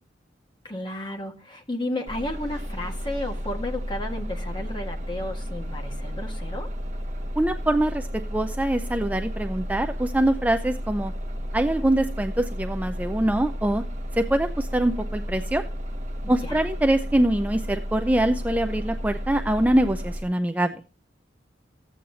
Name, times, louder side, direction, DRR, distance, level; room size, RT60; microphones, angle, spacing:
voice 1, 0.6-6.7 16.4-16.7, left 1 dB, 25° left, 2 dB, 1.8 m, -33 dB
Bus, 2.1-20.2, equal, 40° right, 1.1 m, -32 dB
voice 2, 7.4-11.1 11.5-13.8 14.2-15.6 16.3-20.7, right 1 dB, 10° right, 7 dB, 0.5 m, -24 dB
14.5 x 8.6 x 2.8 m, 0.34 s
head